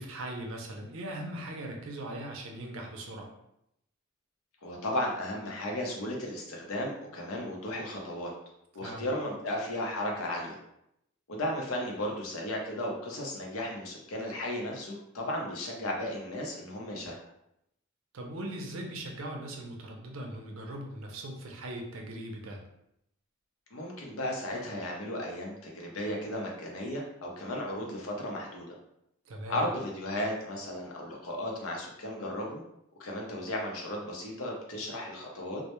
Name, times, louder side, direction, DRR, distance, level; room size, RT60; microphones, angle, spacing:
voice 1, 0.0-3.3 8.8-9.1 18.1-22.6 29.3-29.7, right 1 dB, 75° right, 1 dB, 0.5 m, -39 dB
voice 2, 4.6-8.3 8.7-10.6 11.3-17.2 23.7-28.7 29.5-32.6 33.0-35.6, left 1 dB, 85° left, -1 dB, 0.6 m, -35 dB
2.1 x 2.1 x 2.9 m, 0.80 s
head